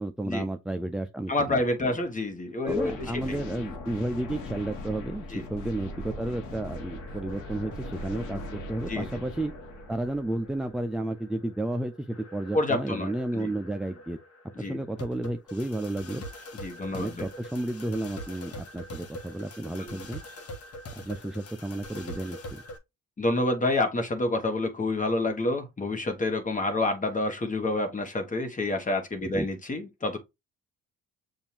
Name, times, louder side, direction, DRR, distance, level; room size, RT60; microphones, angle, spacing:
voice 1, 0.0-1.9 2.6-9.5 9.9-14.2 14.6-16.2 16.9-20.2 21.0-22.6 29.2-29.5, right 1 dB, ahead, 0.4 m, -32 dB
voice 2, 1.3-2.9 3.3-3.4 5.3-5.5 8.9-9.2 12.5-13.5 14.6-14.8 16.6-17.3 19.8-20.0 23.2-30.2, left 2 dB, 25° left, 1.2 m, -28 dB
sound 1, 2.7-10.8, left 1 dB, 90° left, 1.4 m, -40 dB
sound 2, 6.8-22.8, left 1 dB, 50° left, 1.2 m, -45 dB
7.0 x 2.6 x 2.8 m
cardioid pair, 90°, 30 cm